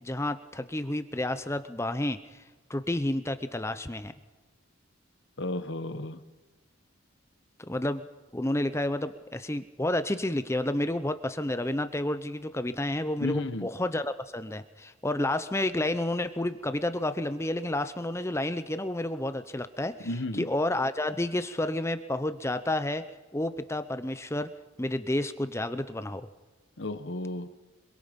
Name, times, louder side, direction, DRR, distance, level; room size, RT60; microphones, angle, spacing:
voice 1, 0.0-2.4 2.7-4.1 7.6-8.1 8.3-20.1 20.4-23.0 23.3-24.5 24.8-26.3, left 1 dB, 10° left, 11 dB, 0.7 m, -30 dB
voice 2, 5.4-6.2 13.2-13.7 20.0-20.5 26.8-27.5, left 2 dB, 55° left, 10 dB, 1.2 m, -33 dB
26.0 x 23.0 x 5.3 m, 1.3 s
head